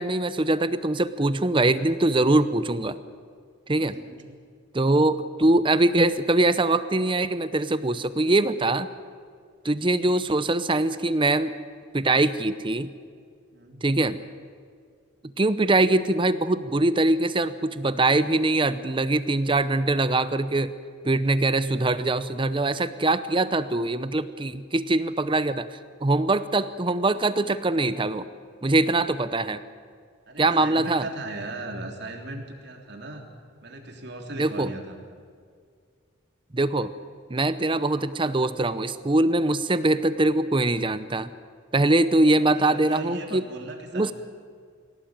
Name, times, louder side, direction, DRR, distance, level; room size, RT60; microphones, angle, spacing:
voice 1, 0.0-3.0 3.7-4.0 4.7-8.9 9.6-11.5 11.9-12.9 13.8-14.2 15.4-20.7 21.0-28.3 28.6-29.6 30.4-31.1 34.4-34.7 36.5-36.9 37.3-41.3 41.7-43.5 43.9-44.1, right 2 dB, 25° right, 13 dB, 0.7 m, -23 dB
voice 2, 3.8-4.4 4.8-5.0 13.5-13.8 30.3-33.2 33.6-34.9 42.5-44.1, right 2 dB, 55° right, 2 dB, 3.3 m, -38 dB
24.0 x 17.0 x 8.9 m, 2.1 s
head